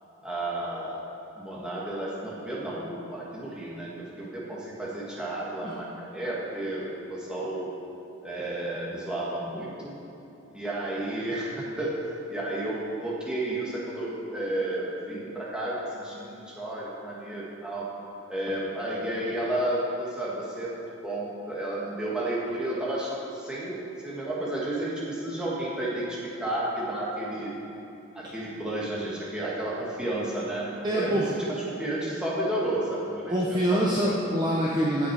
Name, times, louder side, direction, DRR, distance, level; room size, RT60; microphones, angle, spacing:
voice 1, 0.2-1.1 1.4-3.9 4.2-7.7 8.2-9.9 10.5-12.0 12.3-17.9 18.3-27.5 28.1-34.2, right 1 dB, 5° right, -7 dB, 1.8 m, -32 dB
voice 2, 30.8-31.3 33.3-35.1, equal, 20° right, -4 dB, 0.8 m, -25 dB
15.5 x 6.1 x 4.7 m, 2.9 s
head